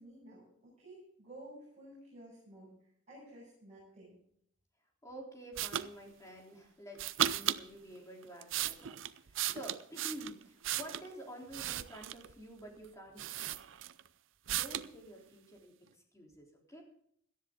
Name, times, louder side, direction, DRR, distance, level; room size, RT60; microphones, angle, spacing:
voice 1, 0.0-2.7 3.1-4.2, right 1 dB, 35° right, -6 dB, 7.0 m, -53 dB
voice 2, 5.0-13.6 14.5-16.8, right 1 dB, 15° left, 0 dB, 3.5 m, -50 dB
sound 1, 5.6-5.9 7.0-7.6 8.2-11.1 11.5-12.3 12.8-12.9 13.2-14.1 14.5-14.9, right 11 dB, 65° right, 0.5 m, -35 dB
17.5 x 13.0 x 3.8 m, 0.68 s
head